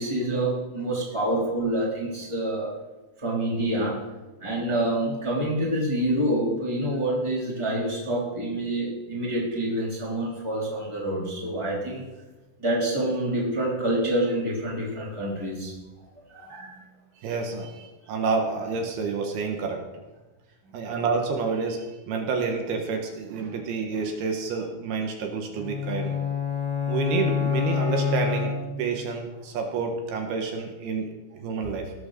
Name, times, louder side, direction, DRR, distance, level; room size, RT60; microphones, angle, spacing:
voice 1, 0.0-2.7 3.2-4.0 4.4-12.0 12.6-15.7 16.3-16.8 20.6-20.9, right 1 dB, 10° right, -5 dB, 2.9 m, -27 dB
voice 2, 17.2-19.8 20.7-26.2 26.9-28.5 28.8-31.9, right 4 dB, 75° right, 3 dB, 3.3 m, -29 dB
sound 1, 25.5-29.1, left 6 dB, 5° left, 2.0 m, -27 dB
17.5 x 6.1 x 6.6 m, 1.1 s
omnidirectional pair, 4.6 m